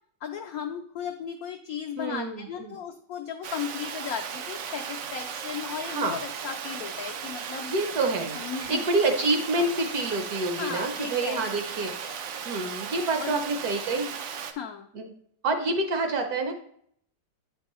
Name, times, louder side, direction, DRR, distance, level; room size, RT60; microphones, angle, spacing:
voice 1, 0.2-7.7 8.3-8.8 9.5-9.7 10.5-11.8 13.2-13.4 14.5-14.9, left 8 dB, 80° left, 3 dB, 0.8 m, -36 dB
voice 2, 2.0-2.8 5.8-6.2 7.7-8.4 8.7-12.1 12.4-14.1 14.9-15.1 15.4-16.5, right 2 dB, 65° right, 6 dB, 1.1 m, -27 dB
Water, 3.4-14.5, right 7 dB, 80° right, 0.7 m, -36 dB
9.0 x 4.5 x 3.0 m, 0.66 s
omnidirectional pair, 2.0 m